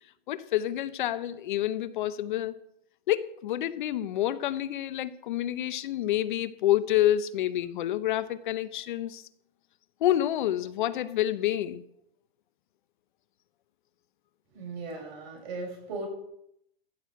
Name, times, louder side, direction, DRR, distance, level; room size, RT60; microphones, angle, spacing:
voice 1, 0.3-2.5 3.1-9.2 10.0-11.8, left 12 dB, 55° left, 0.7 m, -28 dB
voice 2, 14.5-16.1, right 3 dB, 50° right, 6.5 m, -37 dB
14.5 x 6.2 x 7.9 m
hypercardioid pair, 145°, 30 cm